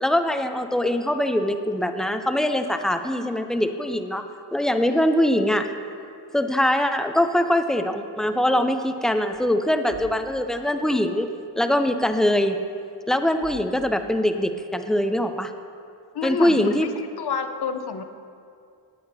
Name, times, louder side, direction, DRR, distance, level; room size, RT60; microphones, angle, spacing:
voice 1, 0.0-4.2 4.5-5.8 6.3-11.3 11.6-12.6 13.1-15.5 16.2-16.9, left 1 dB, ahead, 7 dB, 0.5 m, -22 dB
sound 1, 9.3-9.5 9.9-10.4 11.5-11.6 12.0-12.1 13.4-14.3, left 2 dB, 45° right, 2.2 m, -46 dB
voice 2, 16.1-16.7 17.2-18.0, left 7 dB, 60° left, 7 dB, 0.8 m, -29 dB
18.0 x 8.5 x 2.7 m, 2.4 s
cardioid pair, 85°, 45 cm